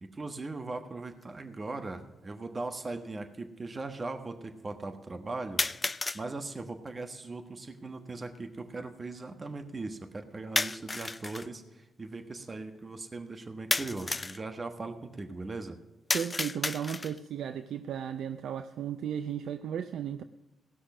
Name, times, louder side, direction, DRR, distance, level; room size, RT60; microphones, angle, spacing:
voice 1, 0.0-5.6 6.1-15.8, right 3 dB, 35° right, 7 dB, 1.3 m, -39 dB
sound 1, 1.2-1.3 2.3-2.4 5.6-6.2 10.6-11.5 13.7-14.4 16.1-17.3, left 3 dB, 25° left, 0.3 m, -32 dB
voice 2, 16.1-20.2, right 8 dB, 70° right, 10 dB, 0.4 m, -35 dB
17.0 x 6.3 x 6.1 m, 1.1 s
hypercardioid pair, 45°, 0 cm